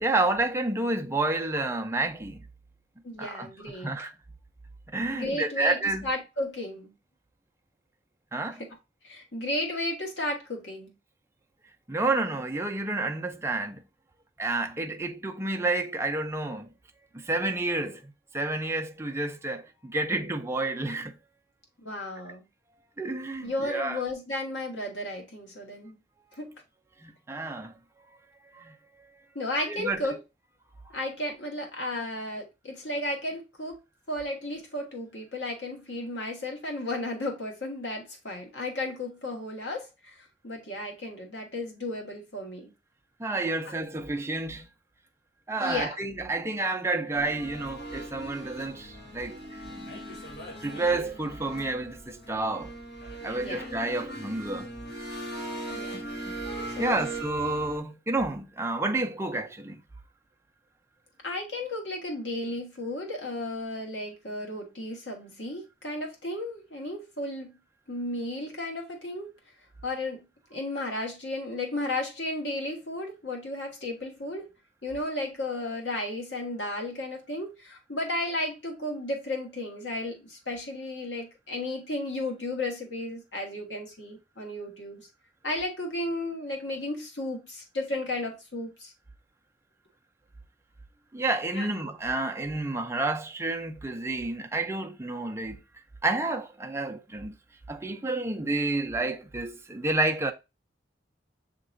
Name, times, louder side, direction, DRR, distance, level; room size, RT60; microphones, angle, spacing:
voice 1, 0.0-2.5 3.2-4.1 4.9-6.1 8.3-8.6 11.9-13.8 14.4-16.7 17.1-21.2 22.3-22.4 23.0-24.0 27.0-27.8 28.5-29.1 29.6-30.1 43.2-44.7 45.5-50.0 50.6-52.7 53.2-54.7 55.9-56.3 56.8-59.8 91.1-95.6 96.0-97.4 97.7-100.3, right 2 dB, 15° right, 0.5 m, -30 dB
voice 2, 3.0-3.9 5.1-5.8 6.0-6.9 9.0-10.9 21.8-22.4 23.4-25.9 26.4-26.5 29.3-30.2 30.9-33.8 34.1-40.1 40.4-42.7 45.6-46.0 53.2-53.7 55.7-56.1 56.8-57.0 61.2-67.5 67.9-69.3 69.8-70.2 70.5-74.5 74.8-85.1 85.4-88.9 91.5-91.7, left 1 dB, 80° left, 1.6 m, -34 dB
sound 1, 47.1-57.8, right 1 dB, 60° left, 1.4 m, -39 dB
6.5 x 2.9 x 2.5 m
head